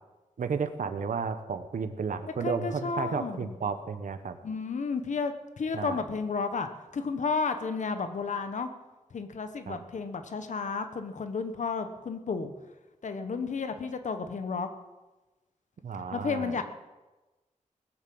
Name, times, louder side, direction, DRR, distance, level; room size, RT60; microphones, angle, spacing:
voice 1, 0.4-4.4 5.7-6.0 9.7-9.8 15.8-16.6, right 5 dB, 85° right, 10 dB, 1.1 m, -33 dB
voice 2, 2.2-3.5 4.4-8.7 9.1-12.5 13.0-14.7 16.1-16.6, left 5 dB, 70° left, 8 dB, 1.3 m, -32 dB
19.5 x 7.3 x 7.8 m, 1.1 s
wide cardioid pair, 175°, 13 cm